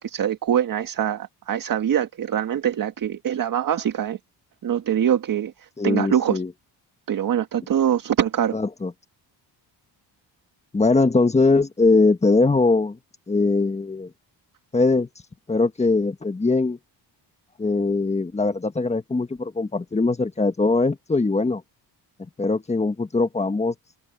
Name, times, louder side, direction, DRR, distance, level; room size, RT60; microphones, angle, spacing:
voice 1, 0.0-4.2 4.6-6.4 7.1-8.6, right 9 dB, 50° right, 1.6 m, -23 dB
voice 2, 5.8-6.5 8.5-8.9 10.7-13.0 13.3-14.1 14.7-15.1 15.5-16.8 17.6-21.6 22.2-24.0, left 3 dB, 15° left, 1.5 m, -21 dB
cardioid pair, 135°, 43 cm